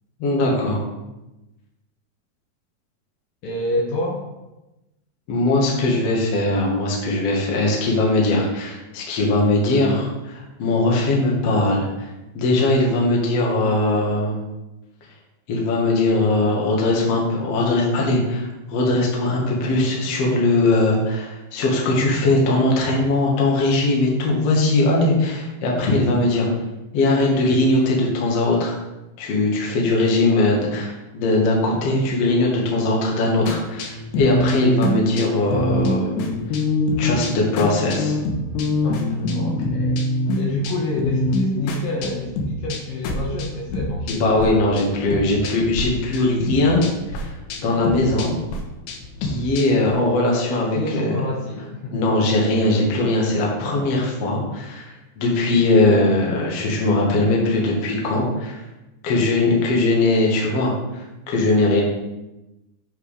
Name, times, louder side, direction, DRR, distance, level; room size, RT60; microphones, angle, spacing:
voice 1, 0.2-0.8 5.3-14.4 15.5-26.5 26.9-28.8 29.2-36.2 37.0-38.2 44.1-48.3 49.2-51.1 51.9-58.6 59.0-61.8, left 2 dB, 55° left, -2 dB, 2.1 m, -20 dB
voice 2, 3.4-4.2 38.8-40.0 40.3-44.1 50.4-52.4, left 2 dB, 70° left, -2 dB, 2.5 m, -28 dB
sound 1, 33.5-44.5 44.8-45.8 46.1-49.9, left 1 dB, 90° left, 3.0 m, -25 dB
8.2 x 4.7 x 5.0 m, 1.0 s
omnidirectional pair, 4.6 m